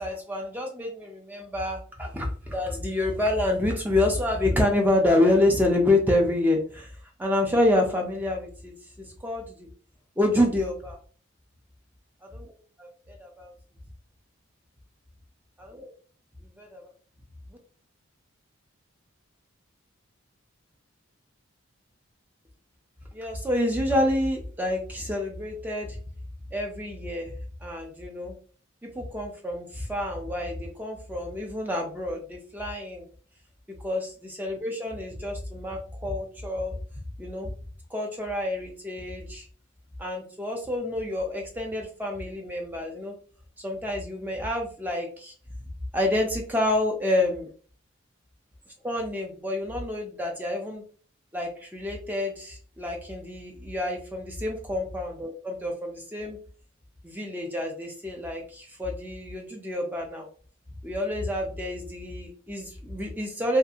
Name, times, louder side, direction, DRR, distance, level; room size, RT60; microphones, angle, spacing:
voice 1, 0.0-9.7 10.2-11.0 12.8-13.5 16.6-16.9 23.1-26.0 26.5-27.3 27.6-28.3 28.9-33.1 33.8-36.8 37.2-37.5 37.9-39.5 40.0-43.1 43.6-45.3 45.9-47.5 48.8-50.8 51.3-56.4 57.0-60.3 60.8-63.6, left 1 dB, 10° right, 2 dB, 0.4 m, -28 dB
2.6 x 2.4 x 2.6 m, 0.43 s
head